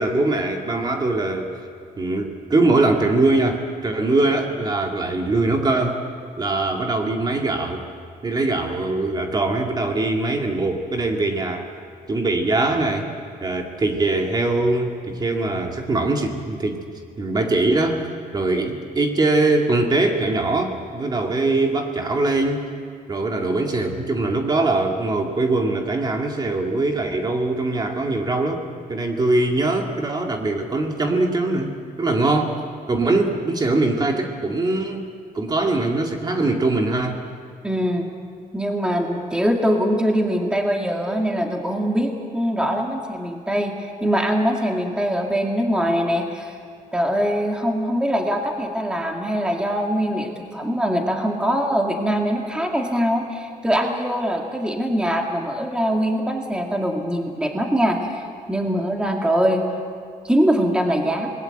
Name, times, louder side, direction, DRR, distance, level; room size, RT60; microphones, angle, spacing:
voice 1, 0.0-1.5 2.0-6.0 6.4-7.8 8.2-11.7 12.1-13.1 13.4-16.8 17.2-18.0 18.3-22.7 23.1-28.6 28.9-32.6 32.9-35.1 35.3-37.2, right 2 dB, 30° right, 2 dB, 2.3 m, -22 dB
voice 2, 37.6-38.1 38.5-46.5 46.9-58.2 58.5-59.6 60.2-61.3, equal, 5° right, 1 dB, 2.2 m, -22 dB
27.0 x 20.5 x 7.9 m, 2.1 s
cardioid pair, 135°, 15 cm